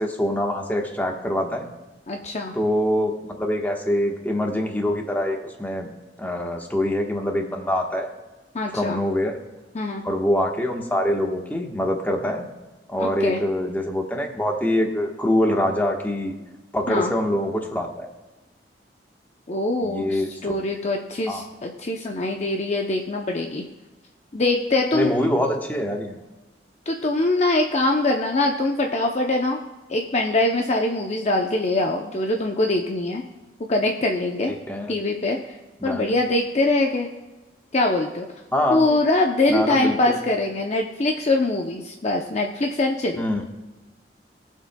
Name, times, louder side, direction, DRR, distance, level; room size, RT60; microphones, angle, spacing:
voice 1, 0.0-1.7 2.5-3.1 3.4-5.9 6.2-8.1 8.7-9.3 10.0-12.5 12.9-16.3 16.7-18.1 19.8-20.3 21.3-21.4 24.9-26.2 34.7-34.9 35.8-36.1 38.5-38.8 39.5-40.2 43.1-43.4, left 1 dB, 10° left, 1 dB, 1.3 m, -24 dB
voice 2, 2.1-2.5 8.5-9.0 9.7-10.0 13.0-13.4 16.9-17.1 19.5-23.6 24.3-25.1 26.9-29.6 29.9-33.2 33.7-34.5 34.9-35.4 35.8-37.1 37.7-38.3 38.7-43.2, left 2 dB, 40° left, 2 dB, 0.7 m, -23 dB
22.0 x 7.5 x 2.3 m, 1.2 s
head